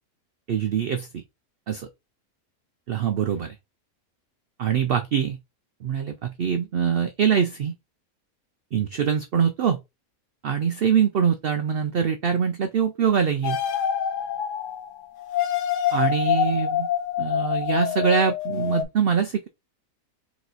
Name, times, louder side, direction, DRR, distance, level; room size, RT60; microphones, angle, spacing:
voice 1, 0.5-1.2 1.7-1.9 2.9-3.6 4.6-5.4 5.8-7.7 8.7-9.8 10.4-13.6 15.9-16.9 17.2-19.5, right 7 dB, 75° right, 0.5 m, -23 dB
sound 1, 13.4-18.8, left 9 dB, 65° left, 1.0 m, -26 dB
4.5 x 3.0 x 3.9 m
omnidirectional pair, 1.6 m